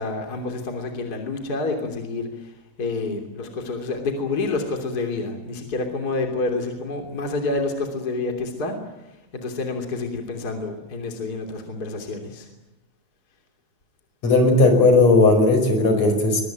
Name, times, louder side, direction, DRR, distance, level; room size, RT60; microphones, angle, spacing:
voice 1, 0.0-2.5 2.8-8.8 9.3-12.5, left 3 dB, 30° left, 4 dB, 3.5 m, -28 dB
voice 2, 14.2-16.4, left 2 dB, 60° left, 7 dB, 6.3 m, -16 dB
23.0 x 22.5 x 9.3 m, 0.99 s
omnidirectional pair, 3.4 m